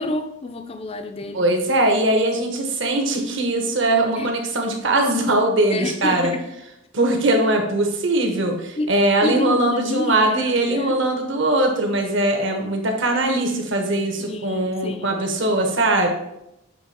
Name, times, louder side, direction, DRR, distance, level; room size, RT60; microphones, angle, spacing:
voice 1, 0.0-1.4 4.1-4.3 5.7-6.5 8.8-8.9 9.2-11.0 14.2-15.1, left 2 dB, 25° left, 8 dB, 0.4 m, -28 dB
voice 2, 1.3-6.3 6.9-16.1, right 1 dB, 60° right, 3 dB, 1.1 m, -21 dB
7.0 x 3.3 x 4.2 m, 0.83 s
head